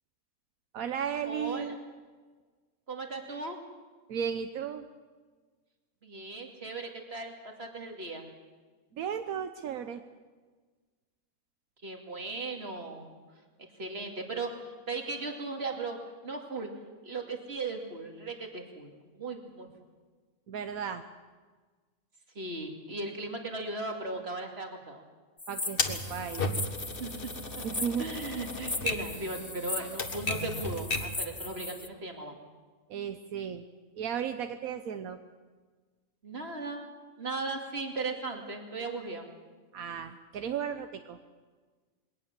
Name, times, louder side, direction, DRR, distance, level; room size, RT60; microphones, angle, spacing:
voice 1, 0.7-1.8 4.1-4.9 8.9-10.0 20.5-21.0 25.5-26.5 27.6-28.1 32.9-33.6 34.0-35.2 39.7-41.2, right 8 dB, 80° right, 8 dB, 1.3 m, -35 dB
voice 2, 1.2-1.7 2.9-3.6 6.0-8.2 11.8-13.1 13.8-16.0 16.2-16.7 17.0-19.7 22.3-25.0 27.0-27.3 27.6-27.7 28.0-32.3 36.2-39.2, right 3 dB, 45° right, 3 dB, 2.8 m, -37 dB
sound 1, 25.4-31.9, left 2 dB, 20° left, 0.3 m, -39 dB
Typewriter, 25.8-31.2, left 2 dB, 40° left, 1.6 m, -35 dB
21.0 x 18.0 x 7.4 m, 1.4 s
omnidirectional pair, 1.5 m